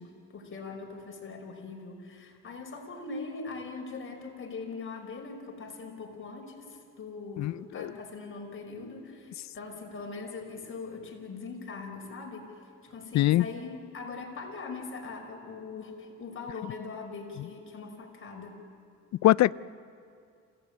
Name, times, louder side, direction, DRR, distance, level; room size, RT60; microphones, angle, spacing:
voice 1, 0.0-12.5 12.8-18.6, left 4 dB, 45° left, 1 dB, 5.5 m, -41 dB
voice 2, 7.4-7.9 13.1-13.4 19.2-19.5, left 15 dB, 65° left, 20 dB, 0.5 m, -22 dB
27.0 x 17.0 x 9.0 m, 2.3 s
cardioid pair, 90°, 30 cm